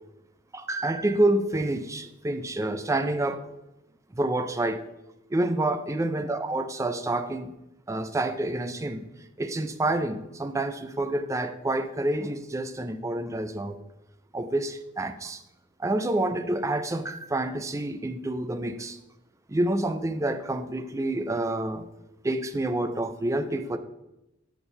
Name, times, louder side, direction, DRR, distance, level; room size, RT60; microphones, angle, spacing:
voice 1, 0.5-3.4 4.1-4.8 5.3-7.5 7.9-9.1 9.4-13.8 14.3-15.4 15.8-19.0 19.5-21.9 22.2-23.8, right 1 dB, 15° right, 10 dB, 0.4 m, -28 dB
6.8 x 4.4 x 5.5 m, 0.92 s
head